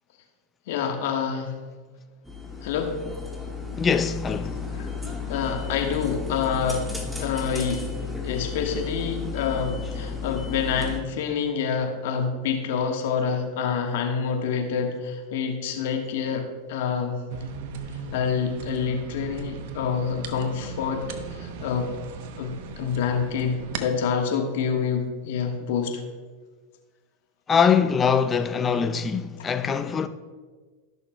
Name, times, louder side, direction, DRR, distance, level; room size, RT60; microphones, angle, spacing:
voice 1, 0.7-1.6 2.6-3.0 4.7-4.9 5.3-6.9 7.2-7.9 8.2-17.2 18.1-21.9 22.4-26.0, left 6 dB, 70° left, 1.3 m, -27 dB
sound 1, 2.3-11.0, left 5 dB, 5° right, 1.5 m, -33 dB
voice 2, 3.8-4.6 27.5-30.1, left 6 dB, 25° left, 0.5 m, -22 dB
sound 2, 17.3-23.8, right 6 dB, 65° right, 0.8 m, -37 dB
15.0 x 6.4 x 2.2 m
hypercardioid pair, 100°, 0 cm